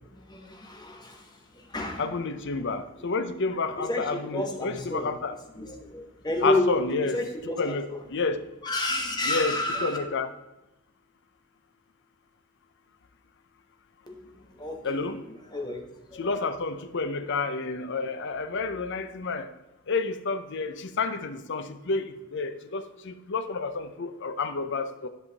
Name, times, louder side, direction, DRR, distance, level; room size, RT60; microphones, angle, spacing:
voice 1, 0.1-2.1 2.5-2.6 3.7-5.1 5.5-7.8 8.6-10.0 14.1-15.8 16.1-16.4, left 1 dB, 20° left, 2 dB, 1.2 m, -31 dB
voice 2, 2.0-5.4 6.4-7.2 7.6-8.4 9.3-10.3 14.8-15.2 16.2-19.5 19.9-25.1, left 4 dB, 55° left, 10 dB, 0.6 m, -30 dB
10.5 x 5.6 x 4.0 m, 1.0 s
head